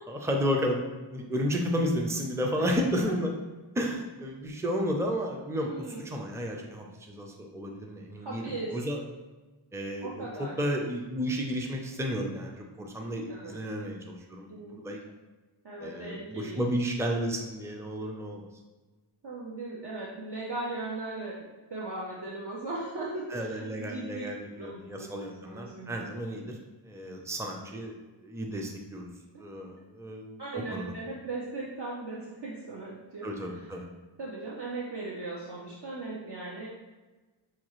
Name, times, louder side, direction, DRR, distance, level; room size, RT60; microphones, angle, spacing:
voice 1, 0.1-0.8 1.1-3.3 3.8-9.0 9.7-15.0 15.8-18.5 23.3-26.5 26.8-27.9 28.2-29.1 29.4-30.3 30.7-30.9 33.2-33.9, equal, 5° right, 1 dB, 0.5 m, -32 dB
voice 2, 5.6-6.0 8.2-8.8 10.0-10.6 13.3-13.6 14.5-14.9 15.6-16.7 19.2-24.2 24.5-25.1 25.4-26.0 29.3-29.7 30.4-33.6 34.2-36.7, right 2 dB, 55° right, -5 dB, 0.7 m, -38 dB
5.8 x 2.4 x 3.0 m, 1.2 s
wide cardioid pair, 60°, 48 cm